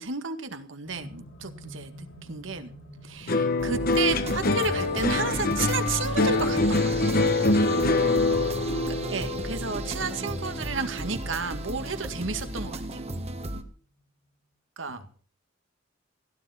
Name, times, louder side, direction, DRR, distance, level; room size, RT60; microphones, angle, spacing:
voice 1, 0.0-2.7 3.0-7.2 8.9-13.0 14.8-15.0, right 4 dB, 75° right, 9 dB, 1.9 m, -32 dB
sound 1, 0.8-13.0 13.9-14.0, equal, 90° left, 6.6 m, -49 dB
sound 2, 3.3-11.7 12.1-12.7, left 2 dB, 50° left, 1.2 m, -25 dB
sound 3, 3.6-13.6, right 1 dB, 35° right, 1.6 m, -35 dB
voice 2, 8.0-8.7 14.9-15.1, left 1 dB, 75° left, 6 dB, 2.7 m, -38 dB
16.5 x 12.5 x 5.8 m, 0.42 s
head